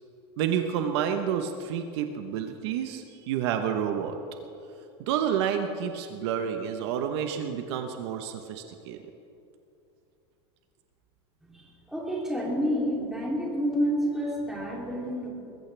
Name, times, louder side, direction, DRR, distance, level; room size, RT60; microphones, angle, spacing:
voice 1, 0.4-4.2 5.1-9.0, right 8 dB, 65° right, 6 dB, 1.1 m, -29 dB
voice 2, 11.5-15.3, equal, 5° right, -5 dB, 3.1 m, -29 dB
21.5 x 14.5 x 3.4 m, 2.8 s
supercardioid pair, 155°, 15 cm